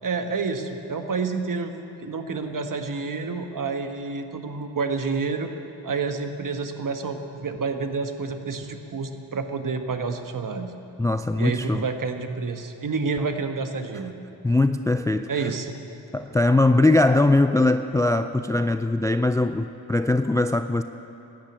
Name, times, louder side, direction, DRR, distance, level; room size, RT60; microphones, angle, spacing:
voice 1, 0.0-1.7 2.0-5.5 5.8-10.7 11.4-14.1 15.3-15.8, right 4 dB, 45° right, 7 dB, 1.5 m, -29 dB
voice 2, 11.0-11.8 14.4-15.5 16.1-20.8, left 2 dB, 10° left, 10 dB, 0.4 m, -21 dB
14.5 x 10.5 x 8.7 m, 2.9 s
cardioid pair, 60°, 45 cm